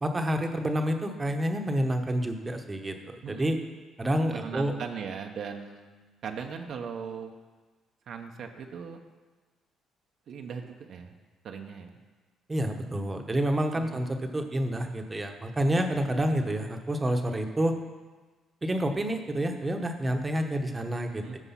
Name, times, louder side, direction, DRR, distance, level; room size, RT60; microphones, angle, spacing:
voice 1, 0.0-3.6 4.0-4.7 12.5-17.7 18.6-21.4, right 1 dB, 20° right, 5 dB, 1.0 m, -28 dB
voice 2, 4.3-5.9 6.2-7.4 8.1-9.0 10.3-11.2 11.4-12.0 13.7-14.0 21.2-21.4, right 6 dB, 60° right, 4 dB, 0.9 m, -38 dB
14.5 x 4.9 x 5.7 m, 1.3 s
cardioid pair, 115°, 0 cm